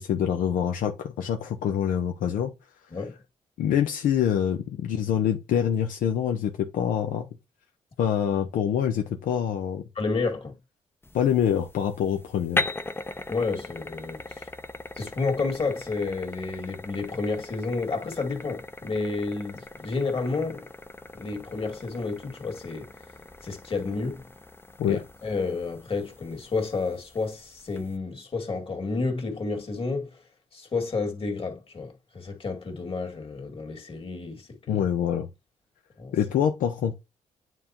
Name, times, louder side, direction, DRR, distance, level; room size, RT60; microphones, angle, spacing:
voice 1, 0.0-2.5 3.6-7.3 8.0-9.8 11.1-12.7 24.8-25.0 34.7-35.3 36.1-36.9, left 9 dB, 85° left, 0.7 m, -25 dB
voice 2, 10.0-10.6 13.3-14.5 15.0-20.7 21.1-22.9 23.4-24.3 24.9-30.2 30.5-34.9 36.0-36.2, left 4 dB, 45° left, 2.1 m, -30 dB
sound 1, 11.0-28.0, left 2 dB, 15° left, 0.6 m, -39 dB
9.2 x 3.8 x 2.9 m
cardioid pair, 65°, 14 cm